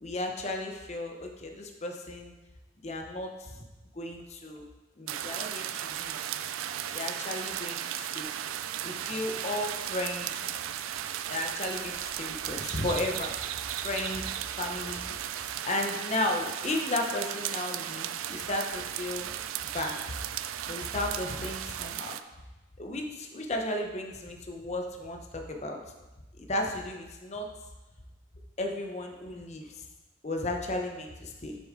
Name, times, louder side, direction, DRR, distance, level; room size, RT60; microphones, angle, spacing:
voice 1, 0.0-2.3 2.8-3.6 3.9-4.6 5.0-6.2 6.9-8.3 8.8-10.4 11.3-13.4 13.7-14.2 14.6-15.2 15.6-19.3 19.7-20.0 20.6-22.2 22.8-25.8 26.4-27.5 28.6-29.7 30.2-31.6, left 1 dB, 35° left, 3 dB, 0.8 m, -34 dB
sound 1, 5.1-22.2, right 11 dB, 85° right, 0.3 m, -36 dB
7.0 x 6.4 x 3.7 m, 1.1 s
head